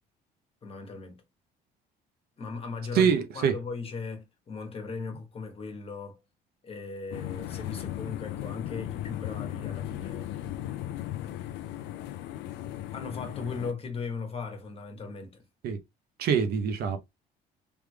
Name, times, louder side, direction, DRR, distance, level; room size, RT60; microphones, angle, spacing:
voice 1, 0.6-1.2 2.4-6.2 6.6-10.3 12.9-15.4, left 4 dB, 35° left, 1.2 m, -38 dB
voice 2, 2.9-3.6 15.6-15.8 16.2-17.0, right 7 dB, 65° right, 0.7 m, -24 dB
sound 1, 7.1-13.7, left 12 dB, 90° left, 0.4 m, -36 dB
3.5 x 3.2 x 2.2 m
cardioid pair, 110°, 17 cm